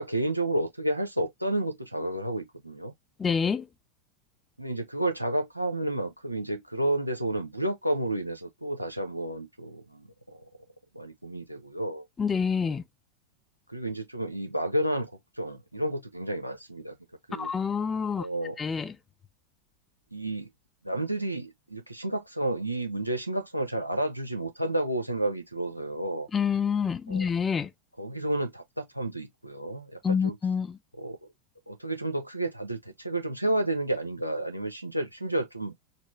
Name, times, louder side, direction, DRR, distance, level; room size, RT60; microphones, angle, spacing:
voice 1, 0.0-2.9 4.6-10.1 10.9-12.0 13.7-15.1 15.4-16.9 17.3-17.5 18.2-18.6 20.1-20.5 20.8-26.3 27.1-27.2 28.0-30.4 31.0-31.2 31.7-35.7, right 1 dB, 90° right, 0.9 m, -31 dB
voice 2, 3.2-3.6 12.2-12.8 17.4-18.3 18.6-18.9 26.3-27.7 30.0-30.8, left 6 dB, 20° left, 0.4 m, -27 dB
4.2 x 2.1 x 3.1 m
figure-of-eight pair, 90°, 0 cm